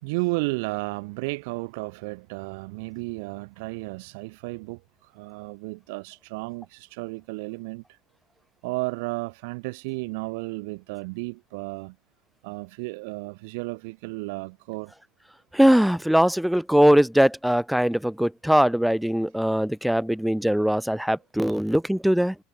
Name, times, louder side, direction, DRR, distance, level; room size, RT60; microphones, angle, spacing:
voice 1, 0.0-8.0 8.6-12.0 12.4-14.9 21.4-21.6, right 27 dB, 80° right, 1.8 m, -33 dB
voice 2, 15.5-22.3, equal, ahead, 0.6 m, -21 dB
cardioid pair, 165°, 0 cm